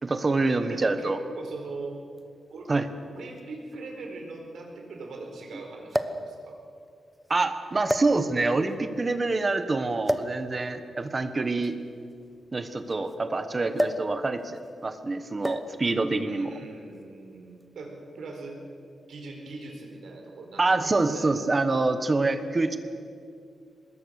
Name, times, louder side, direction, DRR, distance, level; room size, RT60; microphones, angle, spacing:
voice 1, 0.0-1.2 2.7-2.9 7.3-11.8 12.5-16.5 20.6-22.8, right 3 dB, 25° right, 10 dB, 1.3 m, -26 dB
voice 2, 0.6-2.0 2.5-2.7 3.1-6.6 16.2-18.6 19.1-21.3, right 3 dB, 75° right, 2 dB, 4.8 m, -41 dB
sound 1, 2.2-2.3 3.4-3.5 3.7-3.8 5.9-6.3 7.1-7.3 7.9-8.6 10.0-10.4 11.5-13.1 13.8-14.1 14.4-14.7 15.4-15.8 16.8-17.0, equal, ahead, 0.9 m, -30 dB
24.5 x 21.0 x 6.6 m, 2.3 s
wide cardioid pair, 155°, 0 cm